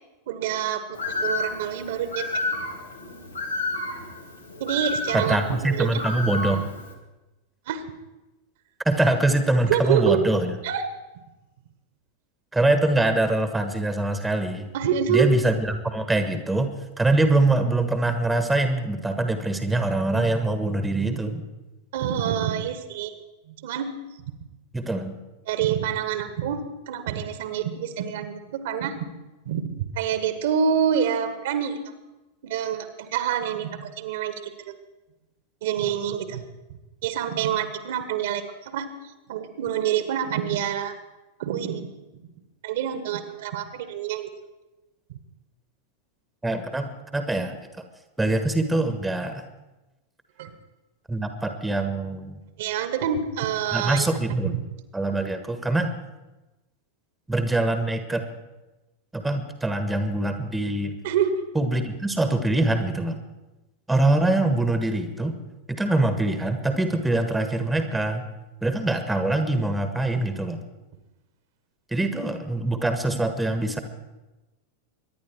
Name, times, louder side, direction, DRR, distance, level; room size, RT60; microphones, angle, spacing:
voice 1, 0.3-0.8 1.2-2.2 4.6-6.0 7.7-7.9 9.7-10.2 10.6-10.8 14.7-15.3 21.9-23.1 23.5-24.0 25.5-29.0 29.4-31.8 32.4-34.7 35.6-36.5 37.0-38.9 39.3-40.9 41.4-41.9 42.6-44.3 45.1-45.2 50.4-50.5 52.6-54.1 61.0-61.3, right 8 dB, 55° right, 10 dB, 1.5 m, -27 dB
Bird, 0.9-6.9, left 2 dB, 80° left, 2.3 m, -31 dB
voice 2, 5.1-6.7 8.8-10.5 12.5-14.7 15.1-21.4 24.7-25.1 46.4-47.6 48.2-49.4 51.1-52.4 53.7-54.6 54.9-55.9 57.3-58.2 59.1-60.9 61.5-63.2 63.9-65.4 65.7-68.3 68.6-70.6 71.9-73.8, right 2 dB, 5° right, 8 dB, 1.4 m, -24 dB
23.5 x 10.5 x 4.6 m, 1.1 s
figure-of-eight pair, 90°, 0 cm